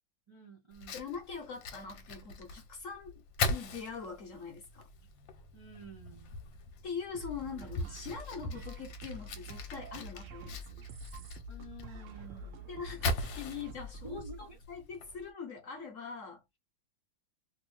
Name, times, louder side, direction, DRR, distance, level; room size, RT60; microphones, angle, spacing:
voice 1, 0.3-1.0 5.5-6.3 11.5-12.6 14.0-14.6, right 2 dB, 35° right, 0.4 m, -50 dB
Fire, 0.7-15.3, left 3 dB, 75° left, 1.4 m, -41 dB
voice 2, 0.9-4.9 6.8-10.8 12.7-16.4, left 6 dB, 50° left, 1.0 m, -43 dB
sound 1, 7.1-14.6, right 1 dB, 70° right, 0.7 m, -46 dB
3.0 x 2.7 x 3.1 m
omnidirectional pair, 2.1 m